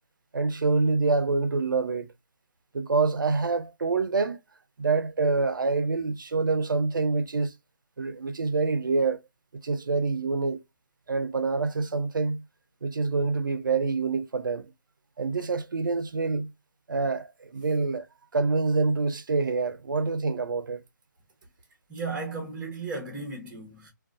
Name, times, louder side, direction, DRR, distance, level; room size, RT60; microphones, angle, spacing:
voice 1, 0.3-2.1 2.7-4.4 4.8-7.5 8.0-9.2 9.6-10.6 11.1-12.4 12.8-14.7 15.2-16.5 16.9-18.1 18.3-20.8, right 4 dB, 80° right, 0.4 m, -26 dB
voice 2, 21.9-23.9, right 3 dB, 10° right, 0.8 m, -35 dB
2.4 x 2.2 x 2.3 m
figure-of-eight pair, 155°, 11 cm